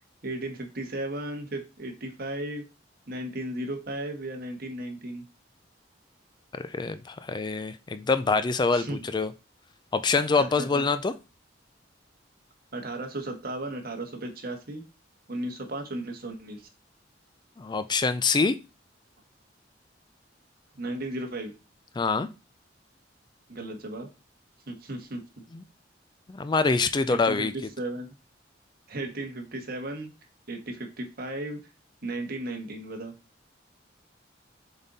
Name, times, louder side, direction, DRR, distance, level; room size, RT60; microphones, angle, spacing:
voice 1, 0.2-2.6 3.1-5.2 8.7-9.0 10.3-10.8 12.7-14.8 15.3-16.7 20.8-21.5 23.5-24.1 24.7-25.2 27.1-28.1 28.9-30.1 30.5-31.6 32.0-33.1, right 1 dB, 55° right, 3 dB, 1.5 m, -35 dB
voice 2, 6.5-9.3 9.9-11.1 17.6-18.5 22.0-22.3 25.5-25.6 26.3-27.5, left 4 dB, 25° left, 11 dB, 0.4 m, -25 dB
7.1 x 4.0 x 4.0 m, 0.29 s
head